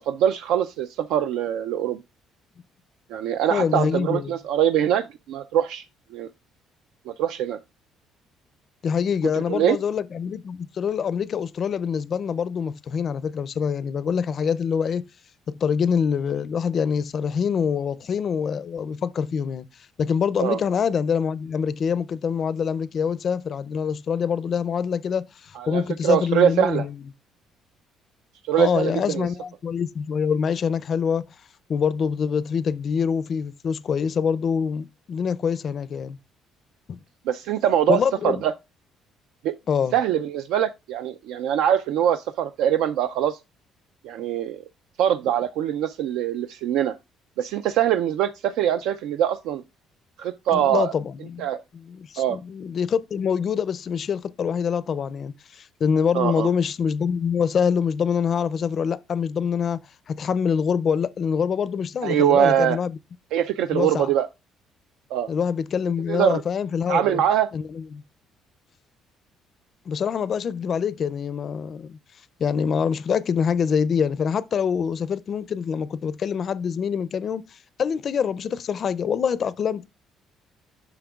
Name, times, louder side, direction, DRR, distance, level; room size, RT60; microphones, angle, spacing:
voice 1, 0.1-2.0 3.1-5.9 6.1-6.3 7.1-7.6 9.3-9.8 20.4-20.6 25.6-26.8 28.5-29.3 37.3-38.5 39.4-39.5 39.9-43.4 44.0-44.6 45.0-46.9 47.4-49.6 50.2-50.9 51.4-51.6 52.2-52.4 56.1-56.5 62.0-62.8 63.3-64.3 65.1-65.3 66.1-66.4 66.9-67.5, right 10 dB, 85° right, 0.3 m, -23 dB
voice 2, 3.5-4.3 8.8-15.0 15.5-19.6 20.0-27.0 28.6-31.3 31.7-36.2 36.9-37.0 37.9-38.4 39.7-39.9 50.5-51.5 51.7-59.8 60.1-63.0 63.7-64.1 65.3-67.2 67.5-68.0 69.9-72.0 72.4-77.4 77.8-79.8, left 7 dB, 45° left, 0.4 m, -25 dB
9.8 x 6.0 x 2.3 m
cardioid pair, 115°, 0 cm